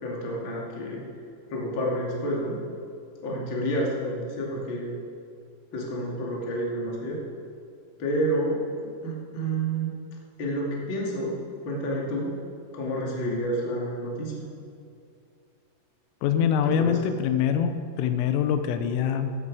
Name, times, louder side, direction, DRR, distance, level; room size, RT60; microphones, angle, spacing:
voice 1, 0.0-1.0 1.5-2.6 3.2-5.0 5.7-7.2 8.0-10.0 10.4-11.4 11.6-12.4 12.7-14.4 16.6-17.0, right 1 dB, 35° left, -3 dB, 2.2 m, -29 dB
voice 2, 16.2-19.4, left 8 dB, 90° left, 8 dB, 3.4 m, -24 dB
15.0 x 11.5 x 4.8 m, 2.4 s
omnidirectional pair, 5.7 m